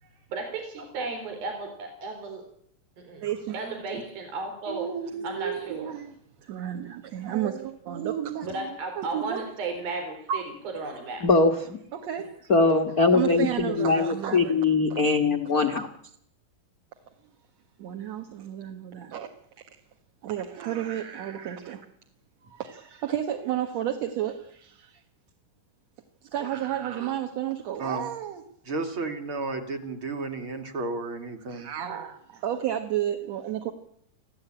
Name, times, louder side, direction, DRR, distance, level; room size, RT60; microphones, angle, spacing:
voice 1, 0.0-2.4 3.0-4.9 5.2-6.0 8.4-11.2, right 3 dB, 75° right, 4 dB, 5.7 m, -35 dB
voice 2, 3.2-3.6 4.7-6.1 6.4-8.7 9.0-9.4 10.3-10.4 11.9-12.4 13.1-14.5 17.8-19.3 20.2-21.9 22.4-25.0 26.3-28.4 31.5-33.7, right 10 dB, 55° right, 4 dB, 2.4 m, -32 dB
voice 3, 11.2-11.8 12.5-15.9, left 3 dB, 80° left, 5 dB, 0.8 m, -22 dB
voice 4, 27.8-28.1 28.7-31.7, right 3 dB, 40° right, 6 dB, 2.7 m, -32 dB
27.0 x 16.0 x 8.9 m, 0.69 s
omnidirectional pair, 4.2 m